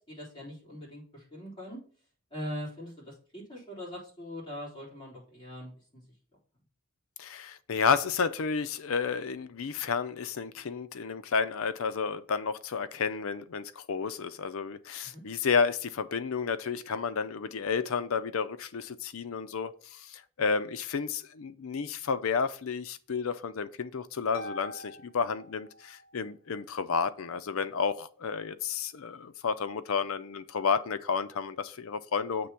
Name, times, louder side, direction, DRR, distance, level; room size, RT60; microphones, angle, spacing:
voice 1, 0.1-1.8 2.3-6.0 15.0-15.2, equal, 20° left, 3.7 m, -42 dB
voice 2, 7.2-32.5, left 5 dB, 70° left, 0.5 m, -31 dB
Harp, 24.3-26.2, equal, 40° left, 1.5 m, -45 dB
7.8 x 3.4 x 5.7 m
head